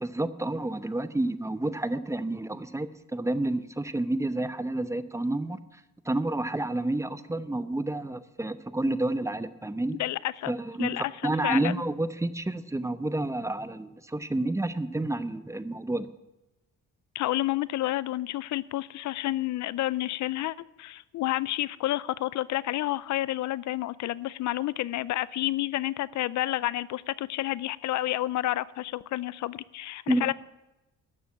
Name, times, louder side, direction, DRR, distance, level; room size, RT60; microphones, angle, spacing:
voice 1, 0.0-5.6 6.0-10.0 10.5-16.1 30.1-30.3, right 2 dB, 10° right, 13 dB, 0.7 m, -30 dB
voice 2, 10.0-10.5 10.8-11.7 17.1-30.3, left 15 dB, 70° left, 20 dB, 0.5 m, -30 dB
12.0 x 6.9 x 8.6 m, 0.96 s
cardioid pair, 90°, 30 cm